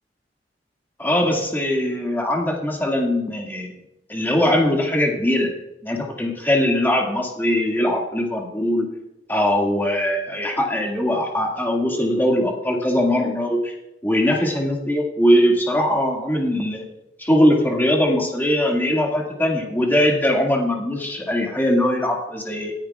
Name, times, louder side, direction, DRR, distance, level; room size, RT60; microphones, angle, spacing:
voice 1, 1.0-3.7 4.1-5.5 5.8-8.9 9.3-13.7 14.0-16.8 17.2-22.7, left 1 dB, 10° left, -1 dB, 1.9 m, -21 dB
19.5 x 10.0 x 2.4 m, 0.91 s
head